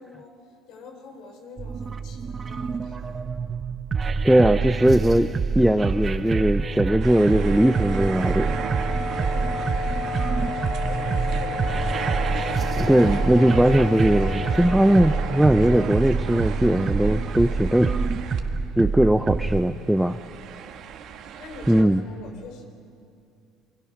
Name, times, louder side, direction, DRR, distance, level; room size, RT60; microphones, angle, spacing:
voice 1, 0.0-4.3 9.1-12.9 18.7-18.9 20.6-22.6, left 4 dB, 70° left, 4 dB, 4.1 m, -46 dB
sound 1, 1.6-19.6, right 4 dB, 30° right, 0.9 m, -27 dB
voice 2, 4.2-5.3 5.6-8.6 12.8-18.0 18.8-20.2 21.7-22.0, right 1 dB, 5° right, 9 dB, 0.6 m, -19 dB
sound 2, 7.0-18.9 19.2-21.8, right 8 dB, 60° right, 1.7 m, -36 dB
Wind instrument woodwind instrument, 7.1-16.5, left 4 dB, 20° left, 4.0 m, -33 dB
28.0 x 21.5 x 6.0 m, 2.5 s
cardioid pair, 115°, 0 cm